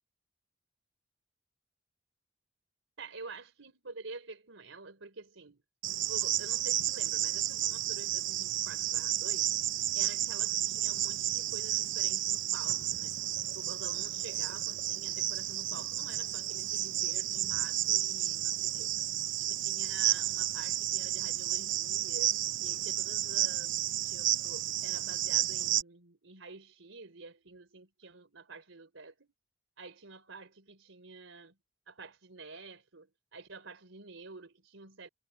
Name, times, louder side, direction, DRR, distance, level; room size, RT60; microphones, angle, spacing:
voice 1, 3.0-5.6 6.1-9.5 9.9-13.2 13.5-19.0 19.4-23.8 24.1-29.3 29.8-31.6 31.9-35.1, right 3 dB, 90° right, 3.6 m, -49 dB
Cricket, 5.8-25.8, right 13 dB, 70° right, 0.7 m, -32 dB
head